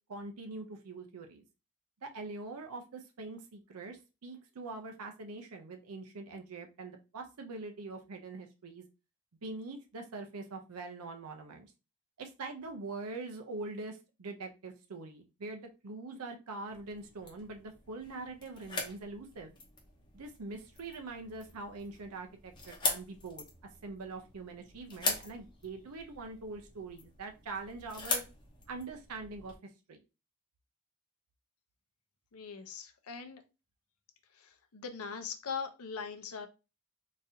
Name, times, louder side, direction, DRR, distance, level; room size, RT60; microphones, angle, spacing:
voice 1, 0.1-1.4 2.0-8.8 9.4-11.7 12.2-19.5 20.1-23.4 23.8-28.2 28.7-29.5 29.9-30.0, right 3 dB, 85° right, 4 dB, 0.6 m, -43 dB
sound 1, 16.7-29.6, left 3 dB, 20° left, 0.7 m, -41 dB
voice 2, 32.3-33.4 34.3-36.5, left 5 dB, 80° left, 7 dB, 0.6 m, -41 dB
3.9 x 2.6 x 2.7 m, 0.29 s
head